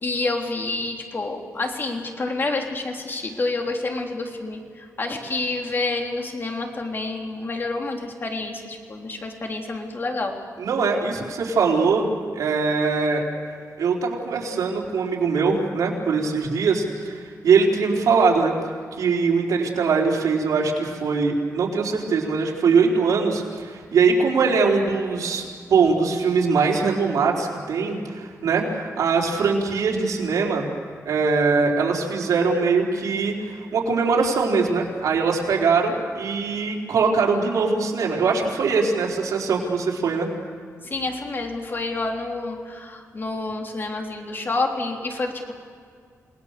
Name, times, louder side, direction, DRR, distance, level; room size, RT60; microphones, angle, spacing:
voice 1, 0.0-10.3 40.8-45.5, left 3 dB, 40° left, 2 dB, 3.4 m, -28 dB
voice 2, 10.6-12.1 12.3-13.2 13.8-18.5 19.0-30.7 31.0-40.3, right 4 dB, 85° right, -1 dB, 4.3 m, -22 dB
29.0 x 19.5 x 6.8 m, 2.1 s
wide cardioid pair, 105°, 6 cm